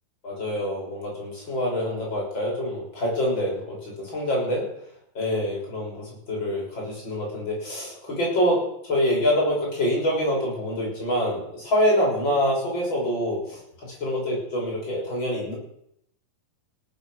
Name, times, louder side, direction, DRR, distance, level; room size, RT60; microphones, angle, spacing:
voice 1, 0.2-4.7 5.2-15.5, equal, 30° left, -3 dB, 6.9 m, -26 dB
18.0 x 8.5 x 6.5 m, 0.72 s
omnidirectional pair, 4.1 m